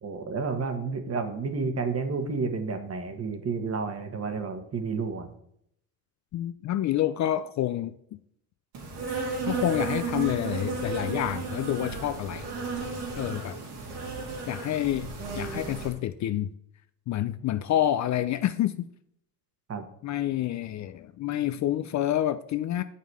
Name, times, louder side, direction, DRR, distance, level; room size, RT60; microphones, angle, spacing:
voice 1, 0.0-5.3 19.7-19.9, right 4 dB, 35° right, 7 dB, 1.4 m, -31 dB
voice 2, 6.3-7.9 9.5-12.5 13.2-13.6 14.5-15.1 15.4-16.5 17.1-18.9 20.0-22.8, left 12 dB, 45° left, 12 dB, 0.5 m, -28 dB
Insect, 8.7-15.9, right 3 dB, 75° right, 3.0 m, -33 dB
7.2 x 5.7 x 4.7 m, 0.71 s
supercardioid pair, 95°, 42 cm